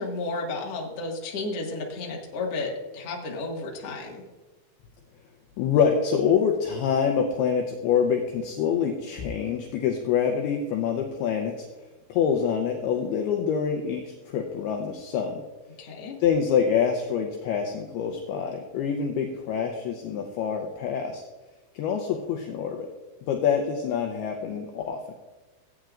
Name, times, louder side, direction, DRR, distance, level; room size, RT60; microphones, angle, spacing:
voice 1, 0.0-4.2 15.8-16.2, left 3 dB, 50° left, -1 dB, 1.8 m, -32 dB
voice 2, 5.6-11.7 12.1-15.4 16.2-21.2 21.7-22.9 23.3-25.1, left 7 dB, 80° left, 3 dB, 2.3 m, -26 dB
17.5 x 8.8 x 2.5 m, 1.2 s
omnidirectional pair, 5.4 m